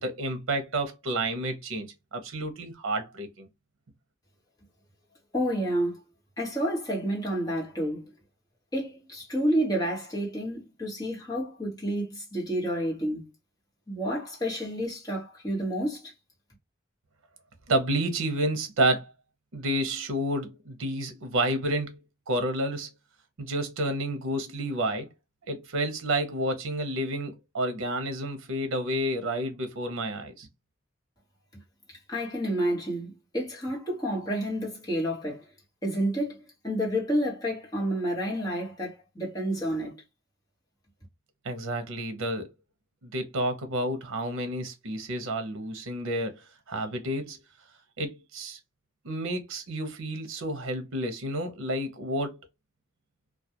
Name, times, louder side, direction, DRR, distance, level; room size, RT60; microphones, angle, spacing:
voice 1, 0.0-3.5 17.7-19.1 19.5-22.0 22.3-22.9 23.4-25.1 25.5-30.5 41.4-42.5 43.0-47.4 48.0-48.6 49.0-52.5, right 1 dB, 85° right, 0.6 m, -30 dB
voice 2, 5.3-6.0 6.4-8.0 8.7-13.3 13.9-16.1 32.1-35.4 35.8-36.4 36.6-40.0, equal, 20° left, 1.0 m, -29 dB
2.3 x 2.2 x 2.7 m
head